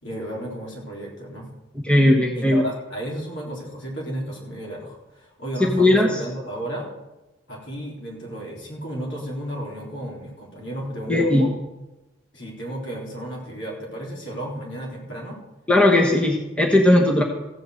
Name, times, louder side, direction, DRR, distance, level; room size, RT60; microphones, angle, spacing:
voice 1, 0.0-1.5 2.4-6.9 7.5-11.5 12.3-15.4, right 1 dB, 65° left, -3 dB, 3.9 m, -33 dB
voice 2, 1.8-2.6 5.7-6.1 11.1-11.5 15.7-17.2, left 1 dB, 5° left, -1 dB, 1.2 m, -17 dB
15.5 x 5.8 x 8.0 m, 1.0 s
head